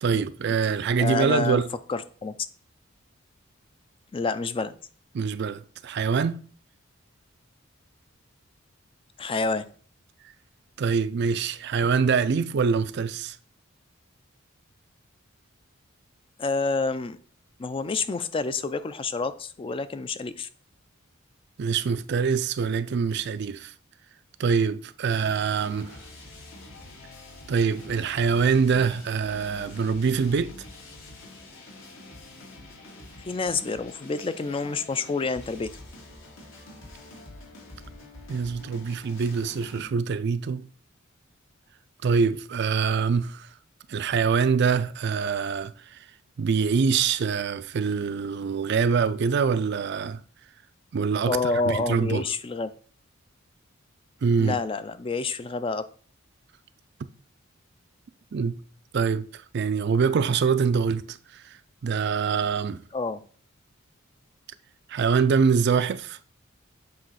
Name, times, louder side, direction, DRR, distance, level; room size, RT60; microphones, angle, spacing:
voice 1, 0.0-1.7 5.1-6.4 10.8-13.4 21.6-23.7 24.4-26.0 27.5-30.5 38.3-40.7 42.0-43.5 43.9-45.7 46.4-50.2 50.9-52.2 54.2-54.6 58.3-58.6 58.9-59.3 59.5-61.2 61.8-62.8 64.9-66.2, right 5 dB, 55° right, 0.4 m, -24 dB
voice 2, 1.0-1.6 1.9-2.3 4.1-4.7 9.2-9.6 16.4-17.2 17.6-20.5 33.2-35.7 51.3-52.7 54.4-55.8 62.9-63.2, left 4 dB, 25° left, 0.4 m, -28 dB
sound 1, 25.1-39.8, left 2 dB, 75° left, 2.1 m, -46 dB
7.6 x 3.0 x 5.6 m
head